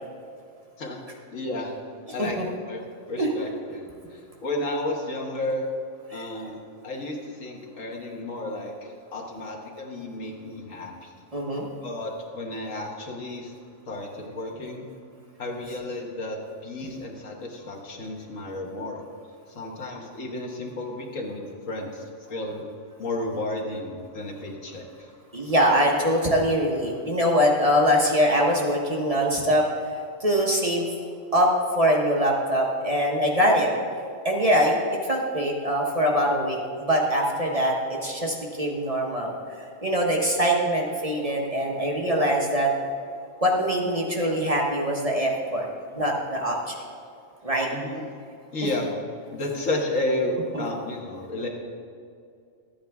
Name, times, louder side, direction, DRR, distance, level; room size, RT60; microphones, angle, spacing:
voice 1, 1.3-1.7 2.1-2.4 2.7-2.8 3.1-5.7 6.1-11.3 11.8-13.5 13.9-14.8 15.4-16.4 16.6-19.0 19.5-22.0 22.3-22.6 23.0-25.1 47.7-48.0 48.5-48.9 49.3-51.5, left 1 dB, 85° left, 0 dB, 1.7 m, -32 dB
voice 2, 11.3-11.7 25.3-29.7 30.2-30.9 31.3-31.5 31.7-33.7 34.2-34.7 35.0-39.3 39.8-42.7 43.4-45.7 45.9-46.7 47.4-47.7 50.5-50.6, equal, 30° right, -2 dB, 1.0 m, -23 dB
13.0 x 8.6 x 3.5 m, 2.4 s
omnidirectional pair, 1.3 m